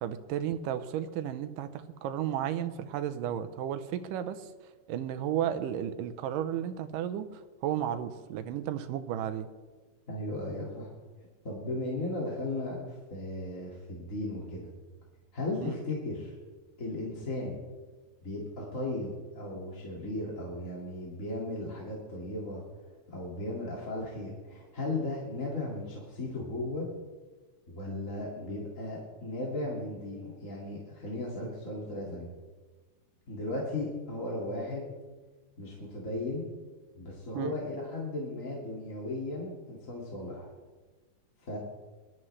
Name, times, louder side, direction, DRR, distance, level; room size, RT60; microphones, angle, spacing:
voice 1, 0.0-4.5 4.9-9.5 15.6-15.8 37.3-37.6, right 10 dB, 90° right, 11 dB, 2.4 m, -33 dB
voice 2, 10.1-10.9 11.4-14.7 15.3-16.4 16.8-17.6 18.2-22.6 23.1-26.9 27.7-32.3 33.3-34.9 35.6-36.4 36.9-40.5 41.5-41.6, left 2 dB, 25° left, -4 dB, 2.2 m, -36 dB
21.5 x 12.0 x 3.3 m, 1.3 s
omnidirectional pair, 3.7 m